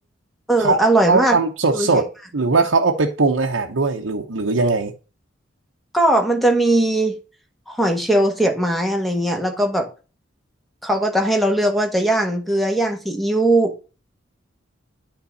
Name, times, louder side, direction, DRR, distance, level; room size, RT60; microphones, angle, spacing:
voice 1, 0.5-1.4 1.7-2.0 5.9-7.1 7.7-9.9 10.8-13.7, right 1 dB, ahead, 1.5 m, -19 dB
voice 2, 1.1-2.1 2.3-4.9, right 3 dB, 85° right, 0.8 m, -19 dB
9.6 x 3.8 x 4.1 m
head